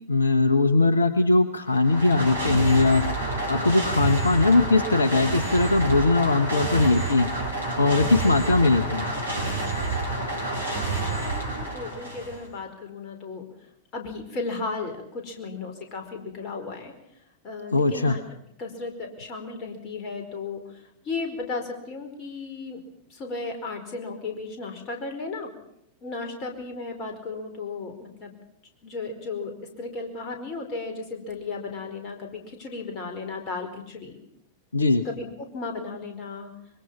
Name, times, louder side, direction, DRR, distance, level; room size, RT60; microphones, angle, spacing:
voice 1, 0.1-3.0 3.5-7.3 7.8-9.1 17.7-18.2 34.7-35.0, left 3 dB, 75° left, 11 dB, 1.0 m, -20 dB
sound 1, 1.6-12.5, right 2 dB, 80° right, 4.2 m, -29 dB
voice 2, 11.2-13.4 13.9-16.9 17.4-18.2 18.6-20.6 21.0-22.8 23.1-25.5 26.0-28.3 28.8-34.2 35.0-36.5, left 3 dB, 35° left, 4 dB, 4.9 m, -35 dB
25.0 x 22.5 x 5.8 m, 0.75 s
figure-of-eight pair, 90°, 0 cm